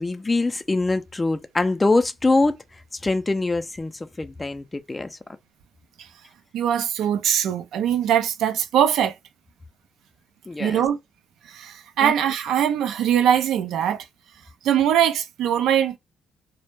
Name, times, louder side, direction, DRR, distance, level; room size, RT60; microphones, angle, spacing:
voice 1, 0.0-2.6 3.0-5.2 10.5-10.8 12.0-12.1, left 2 dB, 20° left, 0.3 m, -23 dB
voice 2, 6.5-9.2 10.6-11.0 11.4-14.1 14.6-16.0, right 9 dB, 80° right, 0.4 m, -22 dB
2.1 x 2.1 x 2.9 m
cardioid pair, 90°, 0 cm